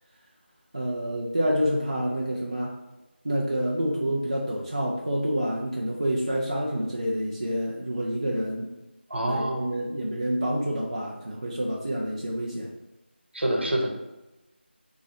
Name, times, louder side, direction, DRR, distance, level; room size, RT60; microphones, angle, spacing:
voice 1, 0.7-2.7 3.2-8.7 9.2-12.7, equal, 30° right, -3 dB, 0.4 m, -28 dB
voice 2, 9.1-9.7 13.3-13.9, right 1 dB, 65° right, 0 dB, 1.0 m, -26 dB
5.9 x 2.8 x 2.8 m, 1.0 s
figure-of-eight pair, 175°, 6 cm